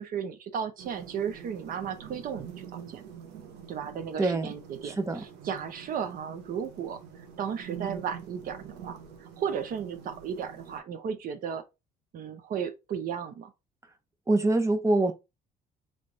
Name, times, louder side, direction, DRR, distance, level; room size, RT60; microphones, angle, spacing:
voice 1, 0.0-3.0 3.7-11.6 12.1-13.5, right 7 dB, 55° right, 0.8 m, -35 dB
sound 1, 0.8-10.8, right 8 dB, 90° right, 1.0 m, -45 dB
voice 2, 4.2-4.5 4.8-5.2 14.3-15.1, right 2 dB, 15° right, 0.8 m, -25 dB
3.3 x 3.2 x 3.9 m
cardioid pair, 110°, 17 cm